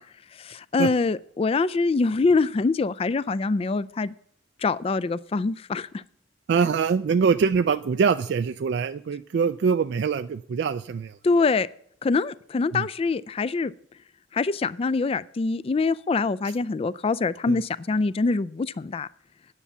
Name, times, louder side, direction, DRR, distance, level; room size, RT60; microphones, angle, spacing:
voice 1, 0.4-4.1 4.6-6.0 11.2-11.7 12.0-13.7 14.3-19.1, left 4 dB, 30° left, 17 dB, 0.3 m, -24 dB
voice 2, 6.5-11.1 12.7-12.9 17.5-17.6, right 5 dB, 65° right, 11 dB, 0.3 m, -23 dB
9.8 x 7.1 x 6.9 m, 0.65 s
head